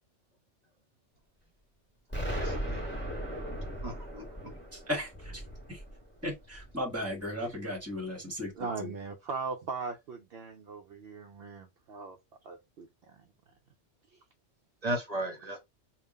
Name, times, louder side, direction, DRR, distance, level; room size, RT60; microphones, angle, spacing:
Explosion, 2.1-7.0, equal, 10° left, 1.7 m, -37 dB
voice 1, 2.3-2.8 3.8-4.2 14.8-15.6, right 1 dB, 35° right, 1.1 m, -35 dB
voice 2, 6.2-8.5, left 1 dB, 15° right, 1.4 m, -35 dB
voice 3, 8.5-12.2 12.4-13.3 14.1-14.2, right 4 dB, 65° right, 0.8 m, -39 dB
3.6 x 2.4 x 3.8 m
omnidirectional pair, 1.2 m